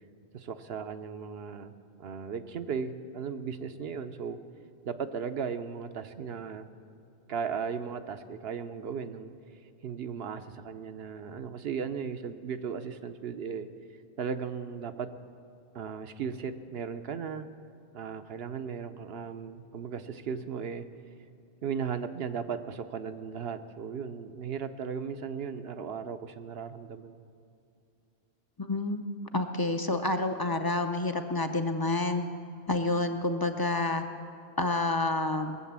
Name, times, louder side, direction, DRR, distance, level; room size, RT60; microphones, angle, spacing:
voice 1, 0.3-4.4 4.8-6.7 7.3-9.3 9.8-13.7 14.2-15.1 15.7-17.5 17.9-20.9 21.6-27.2, right 6 dB, 70° right, 10 dB, 0.9 m, -36 dB
voice 2, 28.6-29.0 29.3-32.2 32.7-34.0 34.6-35.6, left 2 dB, 25° left, 7 dB, 0.5 m, -28 dB
20.5 x 7.7 x 7.3 m, 2.5 s
omnidirectional pair, 1.1 m